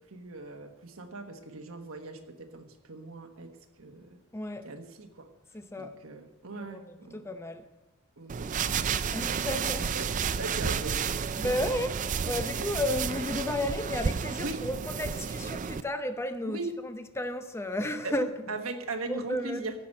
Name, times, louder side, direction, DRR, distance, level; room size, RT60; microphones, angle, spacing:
voice 1, 0.1-3.5 3.8-4.2 4.6-5.3 5.7-7.2 8.2-9.5 9.9-11.5 12.5-12.7 14.4-14.6 16.4-16.7 18.0-18.1 18.5-19.7, right 3 dB, 65° right, 1.4 m, -39 dB
voice 2, 4.3-4.7 5.5-6.0 6.5-7.7 9.1-9.9 11.4-18.3 19.1-19.7, left 1 dB, 10° left, 0.6 m, -33 dB
sound 1, 8.3-15.8, right 6 dB, 35° right, 0.4 m, -31 dB
15.5 x 6.0 x 6.5 m
head